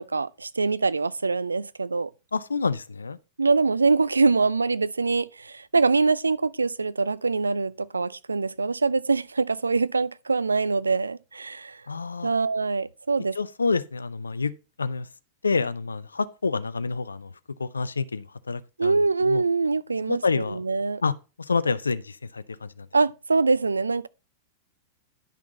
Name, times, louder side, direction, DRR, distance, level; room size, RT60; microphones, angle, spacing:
voice 1, 0.0-2.1 3.4-11.8 12.2-13.4 18.8-21.0 22.9-24.1, right 4 dB, 80° right, 0.4 m, -24 dB
voice 2, 2.3-3.2 11.9-12.3 13.4-14.5 14.8-15.1 15.4-17.3 17.6-19.0 19.2-19.4 20.1-20.6 21.0-21.1 21.4-22.9, left 4 dB, 80° left, 0.6 m, -28 dB
10.5 x 5.9 x 4.0 m
figure-of-eight pair, 95°, 0 cm